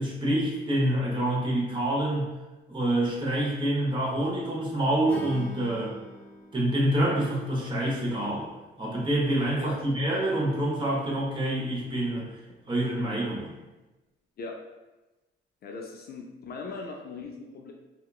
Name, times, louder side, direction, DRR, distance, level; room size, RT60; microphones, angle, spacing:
voice 1, 0.0-2.3 2.7-5.9 6.5-8.5 8.8-12.3 12.7-13.5, right 1 dB, 25° right, -5 dB, 0.9 m, -27 dB
Acoustic guitar / Strum, 5.1-8.3, left 1 dB, 10° left, 0.6 m, -45 dB
voice 2, 15.6-17.7, left 4 dB, 50° left, 1 dB, 0.4 m, -39 dB
2.8 x 2.3 x 2.3 m, 1.1 s
cardioid pair, 90°, 20 cm